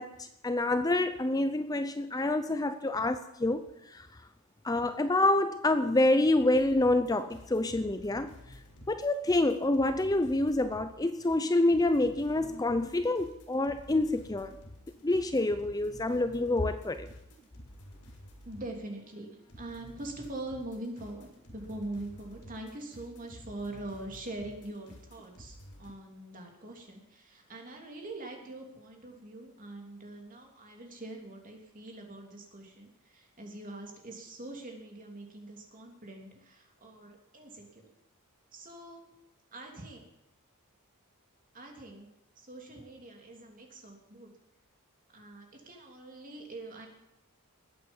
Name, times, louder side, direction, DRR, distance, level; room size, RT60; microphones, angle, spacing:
voice 1, 0.0-4.1 4.6-8.3 8.9-14.6 15.0-17.1, left 2 dB, 15° left, 10 dB, 0.5 m, -27 dB
sound 1, 6.5-18.8 19.0-25.9, equal, 85° left, 4.9 m, -52 dB
voice 2, 18.4-37.9 38.5-39.1 39.5-40.0 41.5-42.1 42.4-44.3 45.1-46.9, right 2 dB, 35° right, 1 dB, 3.1 m, -43 dB
20.5 x 8.7 x 5.6 m, 0.91 s
head